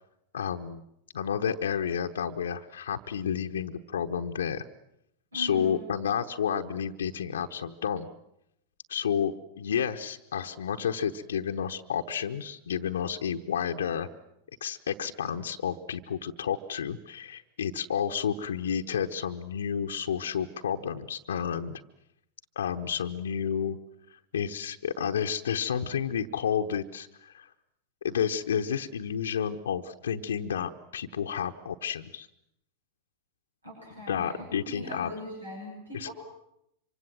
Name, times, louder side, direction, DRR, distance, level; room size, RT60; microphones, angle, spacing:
voice 1, 0.3-0.8 1.1-4.6 5.3-8.1 8.9-14.1 14.6-21.8 22.6-23.8 24.3-27.5 28.0-32.3 33.9-35.1 35.9-36.1, left 8 dB, 65° left, 4 dB, 1.0 m, -31 dB
voice 2, 5.3-5.8 33.6-36.1, equal, 80° right, -1 dB, 7.4 m, -41 dB
25.5 x 24.5 x 7.6 m, 0.80 s
figure-of-eight pair, 90°, 0 cm